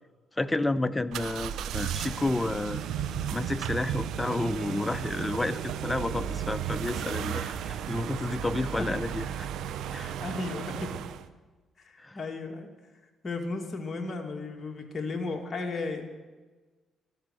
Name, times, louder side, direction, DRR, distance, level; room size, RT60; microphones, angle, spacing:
voice 1, 0.4-2.8 3.3-9.5 9.9-10.1 12.0-12.2, left 2 dB, 15° left, 13 dB, 0.6 m, -31 dB
sound 1, 1.1-11.3, right 9 dB, 80° right, 0.7 m, -34 dB
voice 2, 10.2-10.9 11.8-12.7 13.2-16.0, left 3 dB, 35° left, 2 dB, 2.2 m, -34 dB
13.0 x 12.5 x 6.3 m, 1.3 s
cardioid pair, 90°, 0 cm